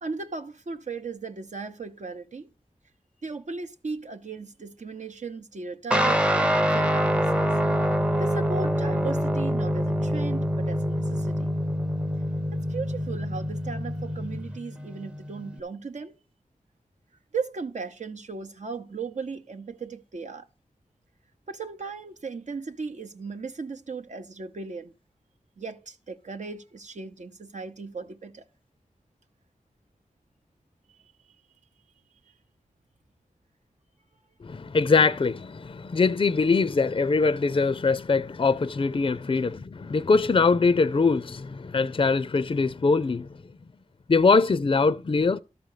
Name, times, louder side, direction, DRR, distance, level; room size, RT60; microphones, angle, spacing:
voice 1, 0.0-2.5 3.2-7.5 8.2-11.5 12.5-16.1 17.3-20.5 21.5-24.9 25.6-28.5 32.3-32.4, right 4 dB, 65° right, 0.8 m, -36 dB
Guitar, 5.9-15.6, equal, 10° right, 0.6 m, -25 dB
voice 2, 34.4-43.3 44.1-45.4, left 4 dB, 40° left, 0.4 m, -22 dB
12.5 x 5.1 x 6.6 m
wide cardioid pair, 70°, 13 cm